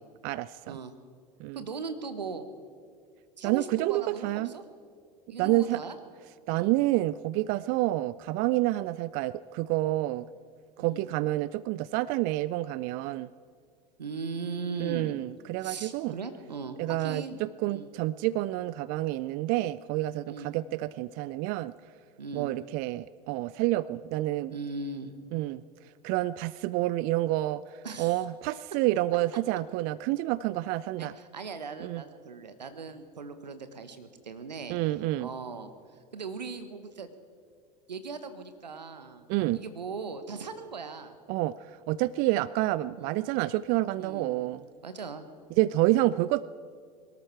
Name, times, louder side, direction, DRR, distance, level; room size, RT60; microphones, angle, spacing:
voice 1, 0.2-0.8 1.4-1.6 3.4-4.5 5.4-5.8 6.5-10.3 10.8-13.3 14.8-16.1 16.8-21.7 22.3-24.5 25.3-25.6 26.0-27.6 28.0-31.1 31.8-32.0 34.7-35.3 39.3-39.6 41.3-41.5 41.9-44.6 45.6-46.5, right 17 dB, 45° right, 19 dB, 0.4 m, -28 dB
voice 2, 1.5-2.5 3.4-4.6 5.3-6.0 6.5-6.7 10.8-11.0 14.0-15.2 15.6-17.4 17.7-17.9 20.2-20.5 22.2-22.5 24.5-25.1 27.8-28.2 31.0-34.8 35.2-35.7 36.1-37.1 37.9-39.3 39.5-41.2 43.0-43.2 44.0-44.3 44.8-45.3, right 4 dB, 85° right, 10 dB, 1.3 m, -39 dB
23.0 x 13.0 x 4.6 m, 2.1 s
figure-of-eight pair, 80°, 21 cm